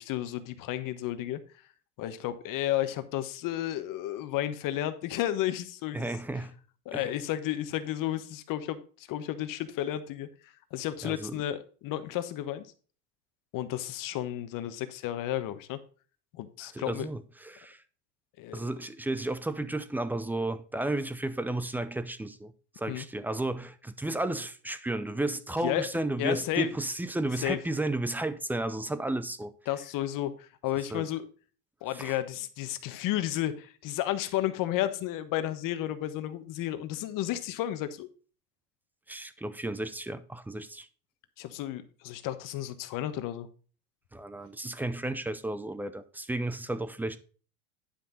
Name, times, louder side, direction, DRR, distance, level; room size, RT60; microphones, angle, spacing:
voice 1, 0.0-1.4 2.0-6.1 6.8-12.7 13.5-15.8 16.3-17.1 18.4-18.6 22.9-23.0 25.6-25.9 26.2-26.7 27.4-27.6 29.7-31.2 31.8-38.1 41.4-43.5, left 13 dB, 45° left, 1.3 m, -32 dB
voice 2, 5.9-6.5 6.9-7.1 11.0-11.4 16.6-17.8 18.5-29.5 30.9-31.1 31.9-32.2 39.1-40.9 44.1-47.2, right 2 dB, 5° right, 0.5 m, -33 dB
10.0 x 5.8 x 4.0 m
supercardioid pair, 125°, 47 cm